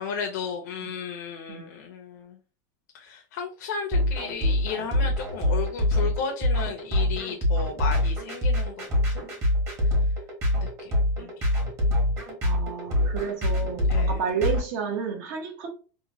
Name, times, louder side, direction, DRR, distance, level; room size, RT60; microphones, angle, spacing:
voice 1, 0.0-2.4 2.9-9.2 9.8-10.1 10.6-11.6 13.9-14.2, left 6 dB, 85° left, 3 dB, 0.6 m, -34 dB
sound 1, 3.9-14.6, left 1 dB, 30° right, 1.1 m, -24 dB
voice 2, 12.4-15.7, right 6 dB, 60° right, 4 dB, 0.9 m, -31 dB
2.9 x 2.2 x 2.8 m, 0.36 s
supercardioid pair, 155°, 9 cm